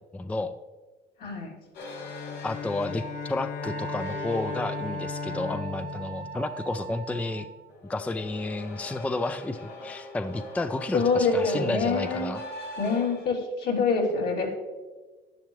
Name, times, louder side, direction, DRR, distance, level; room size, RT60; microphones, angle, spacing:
voice 1, 0.1-0.5 2.4-7.5 7.9-12.4, left 2 dB, 10° left, 10 dB, 0.4 m, -31 dB
voice 2, 1.2-1.5 10.9-12.3 12.8-14.5, left 4 dB, 70° left, -2 dB, 3.0 m, -25 dB
sound 1, 1.7-5.8 7.7-13.3, left 2 dB, 85° left, 2.2 m, -42 dB
Bowed string instrument, 1.8-7.2, left 6 dB, 50° left, 0.7 m, -38 dB
Wind instrument woodwind instrument, 3.6-7.7, right 7 dB, 60° right, 0.6 m, -40 dB
10.5 x 10.5 x 3.2 m, 1.3 s
cardioid pair, 110°, 17 cm